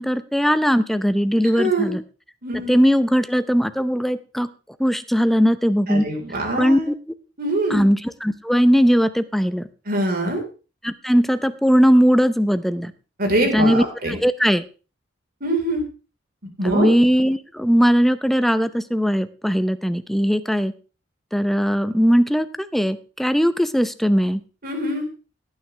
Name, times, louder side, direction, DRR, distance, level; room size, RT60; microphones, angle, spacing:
voice 1, 0.0-2.0 2.7-4.5 4.8-6.1 6.6-6.9 7.7-9.7 10.8-12.9 13.5-14.6 16.6-20.7 21.3-24.4, equal, ahead, 12 dB, 0.7 m, -19 dB
voice 2, 1.5-1.9 2.4-2.8 5.9-6.9 7.4-7.8 9.9-10.4 13.2-14.2 15.4-15.8 16.6-16.9 24.6-25.0, right 1 dB, 50° right, 2 dB, 4.4 m, -23 dB
17.5 x 9.5 x 3.4 m, 0.34 s
head